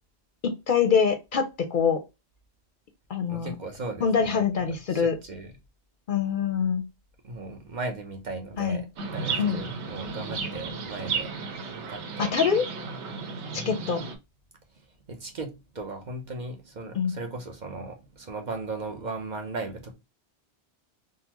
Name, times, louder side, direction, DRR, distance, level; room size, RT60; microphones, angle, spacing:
voice 1, 0.4-2.0 3.1-3.5 4.0-5.2 6.1-6.8 8.6-8.8 9.4-9.6 12.2-12.6 13.5-14.0 16.9-17.1, left 6 dB, 55° left, 0.7 m, -24 dB
voice 2, 3.3-5.5 7.2-11.4 11.7-12.3 14.0-14.1 15.1-19.9, right 3 dB, 50° right, 0.7 m, -37 dB
Chirp tweet, 9.0-14.1, right 4 dB, 85° right, 1.0 m, -34 dB
3.8 x 2.0 x 2.9 m
omnidirectional pair, 1.1 m